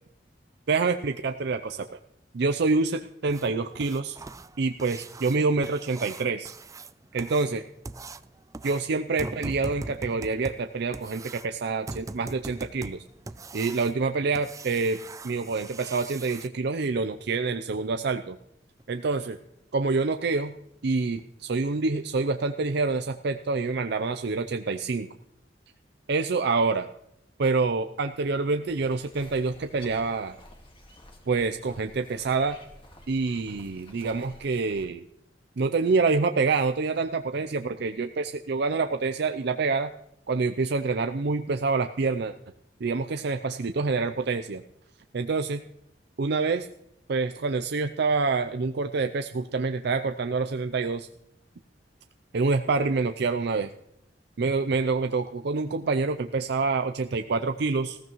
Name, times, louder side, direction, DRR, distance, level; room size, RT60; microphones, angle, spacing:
voice 1, 0.7-1.9 2.3-4.2 4.6-6.5 7.1-7.6 8.6-13.0 13.5-15.0 15.2-18.4 18.9-19.4 19.7-20.5 20.8-25.1 26.1-26.9 27.4-30.3 31.3-32.6 33.1-35.0 35.6-39.9 40.3-42.3 42.8-44.6 45.1-45.6 46.2-46.7 47.1-51.1 52.3-53.7 54.4-58.0, right 4 dB, 65° right, 7 dB, 0.5 m, -27 dB
sound 1, 3.3-16.5 18.8-18.9 19.3-19.4 19.9-20.0 20.5-20.6 21.0-21.2 21.6-21.7 22.1-22.2, right 3 dB, 20° right, 0.4 m, -41 dB
sound 2, 28.7-34.9, left 1 dB, 30° left, 1.8 m, -52 dB
19.5 x 15.0 x 3.1 m, 0.78 s
head